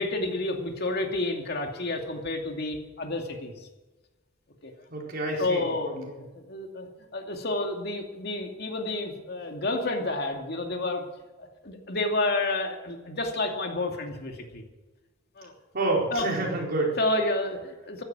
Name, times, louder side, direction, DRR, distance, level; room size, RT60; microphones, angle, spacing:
voice 1, 0.0-3.7 4.6-4.7 5.4-11.1 11.4-14.6 15.4-15.5 16.1-16.3 17.0-18.0, left 2 dB, 55° left, 3 dB, 2.6 m, -30 dB
voice 2, 4.9-6.2 15.7-17.0, right 2 dB, 50° right, -1 dB, 4.4 m, -28 dB
15.0 x 12.0 x 7.6 m, 1.2 s
head